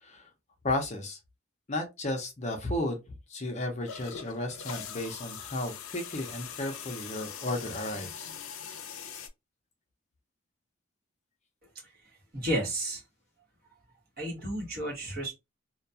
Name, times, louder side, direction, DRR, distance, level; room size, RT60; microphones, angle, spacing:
voice 1, 0.6-1.2 1.7-3.0 3.3-8.3, left 1 dB, 35° left, 0.5 m, -33 dB
sound 1, 3.9-9.3, left 8 dB, 85° left, 0.4 m, -42 dB
voice 2, 12.3-13.0 14.2-15.3, right 1 dB, 45° right, 1.1 m, -32 dB
2.2 x 2.2 x 2.6 m
head